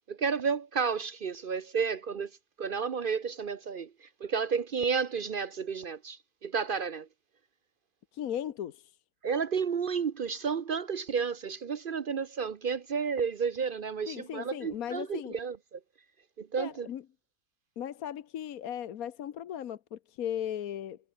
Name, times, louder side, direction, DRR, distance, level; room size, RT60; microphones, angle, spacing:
voice 1, 0.1-2.3 2.6-7.1 9.2-15.8 16.4-16.9, right 6 dB, 50° right, 0.7 m, -32 dB
voice 2, 8.1-9.0 14.1-15.4 16.6-17.0 17.8-21.0, left 10 dB, 80° left, 1.4 m, -37 dB
omnidirectional pair, 1.5 m